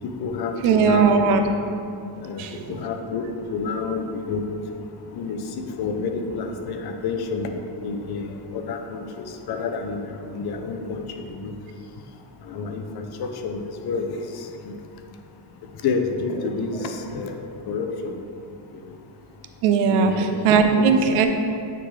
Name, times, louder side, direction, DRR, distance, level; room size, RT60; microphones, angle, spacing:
voice 1, 0.0-1.2 2.2-4.4 5.1-7.5 7.8-11.5 12.4-14.8 15.8-18.2 19.9-20.2 20.8-21.0, left 4 dB, 50° left, 5 dB, 0.6 m, -29 dB
voice 2, 0.6-1.5 2.4-2.7 16.8-16.9 19.6-21.3, right 5 dB, 85° right, 6 dB, 0.7 m, -19 dB
9.0 x 3.8 x 3.2 m, 2.5 s
cardioid pair, 125°, 50 cm